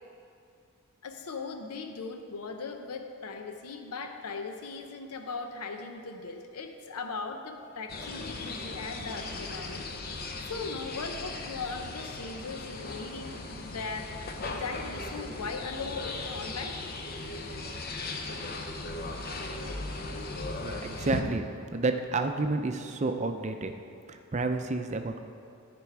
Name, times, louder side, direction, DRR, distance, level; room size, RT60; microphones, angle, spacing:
voice 1, 1.0-9.9 10.5-14.1 14.5-16.8, left 4 dB, 85° left, 6 dB, 0.6 m, -38 dB
sound 1, 7.9-21.2, left 2 dB, 45° left, 0.7 m, -37 dB
voice 2, 20.6-23.7 24.1-25.2, right 3 dB, 30° right, 6 dB, 0.5 m, -30 dB
13.5 x 5.2 x 4.6 m, 2.5 s
head